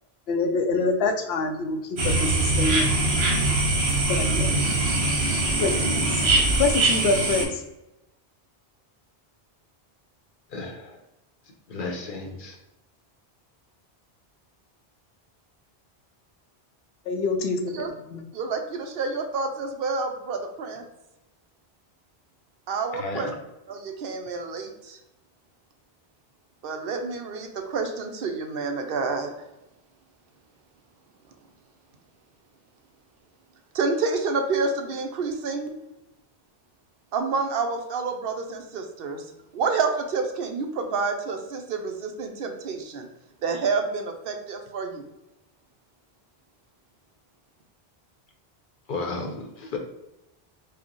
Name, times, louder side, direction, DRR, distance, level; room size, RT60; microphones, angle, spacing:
voice 1, 0.3-2.9 4.1-4.6 4.9-7.6 17.1-17.7 18.1-18.2, left 3 dB, 80° left, 5 dB, 0.8 m, -26 dB
sound 1, 2.0-7.4, right 2 dB, 85° right, 1.2 m, -22 dB
voice 2, 10.5-11.0 11.7-12.6 22.9-23.3 48.9-49.8, left 3 dB, 55° left, 2 dB, 0.9 m, -33 dB
voice 3, 18.3-20.8 22.7-23.3 23.7-25.0 26.6-29.3 33.7-35.7 37.1-39.2 39.5-43.1 43.4-45.1, right 4 dB, 65° right, 5 dB, 0.8 m, -28 dB
4.9 x 2.1 x 3.0 m, 0.93 s
omnidirectional pair, 1.0 m